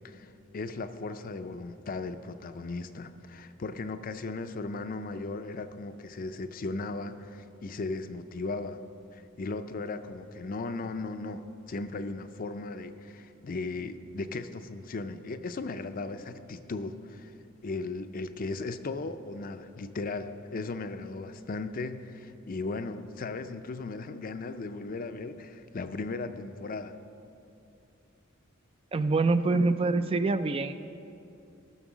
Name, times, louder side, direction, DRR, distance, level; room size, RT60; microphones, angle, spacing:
voice 1, 0.0-8.8 9.1-17.3 17.6-27.0, left 3 dB, 45° left, 10 dB, 0.5 m, -37 dB
voice 2, 28.9-30.7, right 3 dB, 25° right, 11 dB, 0.3 m, -25 dB
15.0 x 6.4 x 6.1 m, 2.7 s
head